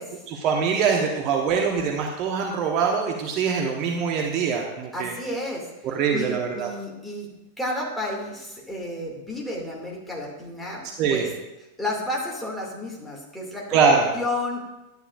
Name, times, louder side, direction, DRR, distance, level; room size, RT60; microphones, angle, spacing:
voice 1, 0.3-5.1 5.8-6.7 11.0-11.3 13.7-14.1, right 6 dB, 40° right, 1 dB, 1.0 m, -23 dB
voice 2, 4.9-7.3 7.6-10.8 11.1-11.3 11.8-13.8 14.1-14.6, left 1 dB, ahead, -3 dB, 2.4 m, -32 dB
11.0 x 9.3 x 2.5 m, 1.0 s
figure-of-eight pair, 90°, 0 cm